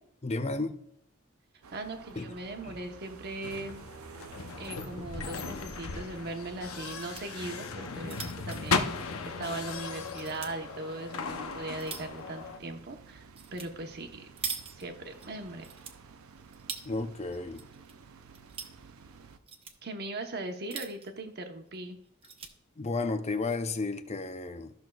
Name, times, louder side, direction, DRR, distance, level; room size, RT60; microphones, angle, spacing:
voice 1, 0.2-0.8 2.2-2.4 2.7-2.8 16.8-17.6 22.8-24.7, left 3 dB, 30° left, 8 dB, 0.6 m, -33 dB
sound 1, 1.6-19.4, right 5 dB, 90° right, 0.6 m, -53 dB
voice 2, 1.7-3.9 4.6-14.3 14.8-15.6 19.8-22.0, right 2 dB, 50° right, 5 dB, 1.0 m, -39 dB
sound 2, 3.4-12.6, left 4 dB, 80° left, 0.7 m, -36 dB
sound 3, 4.3-4.8 5.1-5.2 5.5-5.6 6.6-7.2 7.8-9.6 10.0-10.5 11.2-12.2 13.4-13.7 14.0-15.3 15.6-16.9 17.3-17.9 18.2-18.8 19.3-19.8 20.5-21.2 21.7-21.8 22.0-22.5 23.2-23.6, right 6 dB, 30° right, 0.8 m, -42 dB
14.0 x 6.1 x 2.3 m, 0.72 s
head